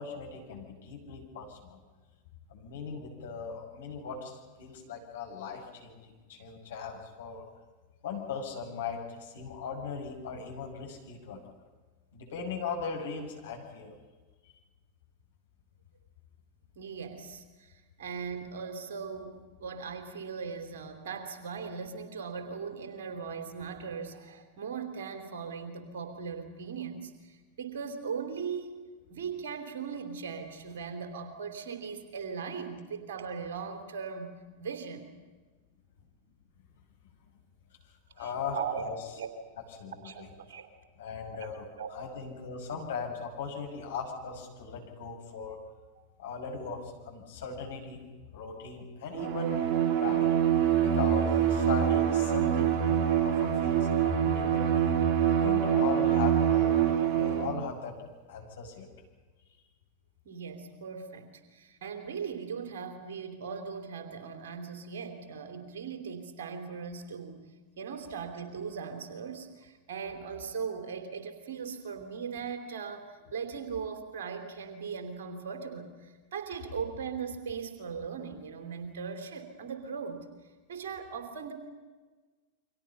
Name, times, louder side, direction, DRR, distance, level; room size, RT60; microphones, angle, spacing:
voice 1, 0.0-1.8 2.5-7.4 8.0-11.5 12.1-13.9 38.2-38.6 38.8-38.9 39.7-40.3 41.0-45.6 46.2-48.0 48.3-49.6 50.0-50.3 50.8-55.0 55.4-58.0 58.3-58.9, left 5 dB, 60° left, 1 dB, 6.0 m, -38 dB
voice 2, 16.7-28.8 29.1-34.3 34.6-35.1 38.2-38.9 39.2-39.3 40.0-40.7 41.4-41.5 41.8-41.9 46.0-46.1 60.2-67.5 67.8-80.3 80.7-81.5, right 6 dB, 60° right, 6 dB, 3.3 m, -39 dB
Bowed string instrument, 49.1-57.7, right 9 dB, 40° right, 1.5 m, -25 dB
29.5 x 24.5 x 5.8 m, 1.3 s
figure-of-eight pair, 90°, 0 cm